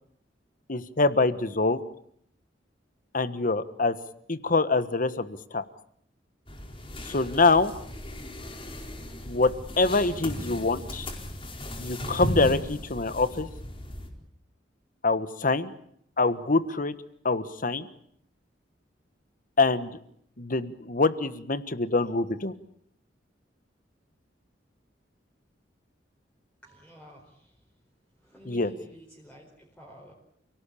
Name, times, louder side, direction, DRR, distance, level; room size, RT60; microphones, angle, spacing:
voice 1, 0.7-1.8 3.1-4.0 4.3-5.6 7.1-7.7 9.2-11.1 11.8-13.5 15.0-15.7 16.2-16.9 17.2-17.9 19.6-19.9 20.4-22.5 28.5-28.7, left 3 dB, 50° left, 13 dB, 1.4 m, -25 dB
sound 1, 6.5-14.1, left 1 dB, 30° left, 4.4 m, -36 dB
voice 2, 26.6-27.6 28.1-30.1, equal, 5° left, -2 dB, 4.7 m, -50 dB
29.0 x 18.0 x 8.6 m, 0.69 s
head